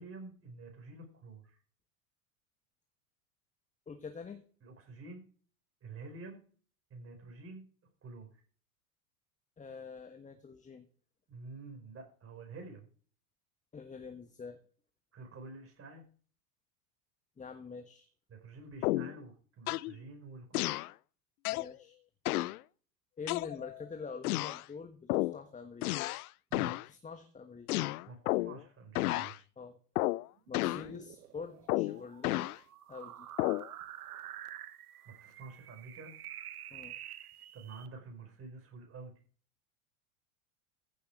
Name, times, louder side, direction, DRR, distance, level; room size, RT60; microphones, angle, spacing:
voice 1, 0.0-1.6 4.6-5.2 5.8-6.4 6.9-7.6 8.0-8.3 11.3-12.9 15.1-16.0 18.3-20.7 26.5-26.7 28.1-29.4 35.1-36.1 37.5-39.1, right 3 dB, 30° right, 4 dB, 5.2 m, -48 dB
voice 2, 3.9-4.4 9.6-10.8 13.7-14.6 17.4-18.1 21.5-22.0 23.2-25.9 26.7-27.9 29.6-29.8 30.5-32.5 32.9-33.3 36.7-37.0, left 5 dB, 15° left, 7 dB, 1.4 m, -46 dB
sound 1, 18.8-19.2 19.7-19.9 20.5-20.9 21.4-21.7 22.2-22.6 23.3-23.8 24.2-24.6 25.1-25.4 25.8-26.3 26.5-26.9 27.7-28.6 28.9-29.4 29.9-30.3 30.5-30.9 31.7-32.6 33.4-33.7, left 18 dB, 80° left, 0.5 m, -32 dB
sound 2, 30.5-37.9, right 11 dB, 85° right, 1.3 m, -49 dB
15.0 x 6.9 x 4.9 m, 0.43 s
hypercardioid pair, 95°, 44 cm